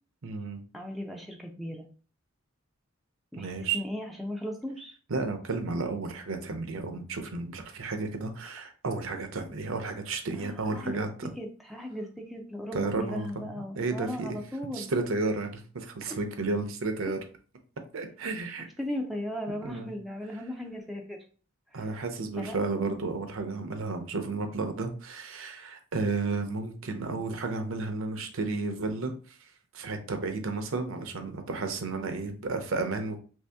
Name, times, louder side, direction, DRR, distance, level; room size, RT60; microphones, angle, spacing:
voice 1, 0.2-0.6 3.3-3.8 5.1-11.3 12.7-14.4 14.7-17.2 17.9-18.7 19.6-19.9 21.7-29.4 29.7-33.2, right 3 dB, 65° right, 6 dB, 0.6 m, -32 dB
voice 2, 0.7-1.9 3.3-4.9 10.4-11.1 11.4-14.9 16.1-16.2 18.8-21.2 21.7-21.9 22.4-22.8, left 1 dB, ahead, 1 dB, 0.4 m, -37 dB
3.1 x 2.7 x 3.4 m, 0.39 s
head